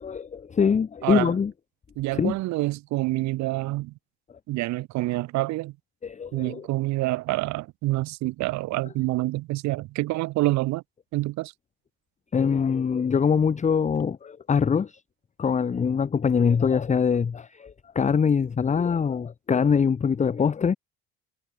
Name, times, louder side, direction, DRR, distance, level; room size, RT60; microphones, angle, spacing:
voice 1, 0.0-1.5 2.1-2.3 6.0-6.7 12.3-15.0 15.4-20.8, left 6 dB, 20° left, 0.8 m, -23 dB
voice 2, 1.0-1.3 2.0-3.9 4.5-5.7 6.3-10.8 11.1-11.5, right 19 dB, 60° right, 0.9 m, -27 dB
supercardioid pair, 90°, 32 cm